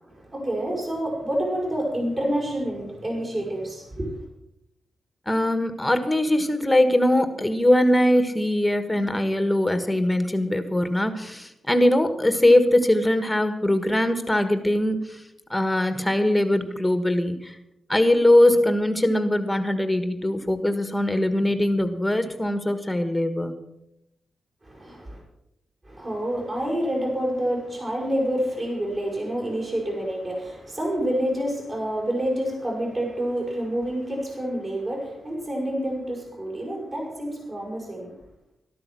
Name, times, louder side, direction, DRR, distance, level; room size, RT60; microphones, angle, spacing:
voice 1, 0.0-4.2 24.6-25.2 25.8-38.1, right 1 dB, 35° right, -2 dB, 6.0 m, -28 dB
voice 2, 5.3-15.2 15.5-17.6 17.9-23.6, left 1 dB, 5° left, 9 dB, 1.5 m, -21 dB
13.0 x 12.5 x 6.2 m, 0.82 s
wide cardioid pair, 120°, 0 cm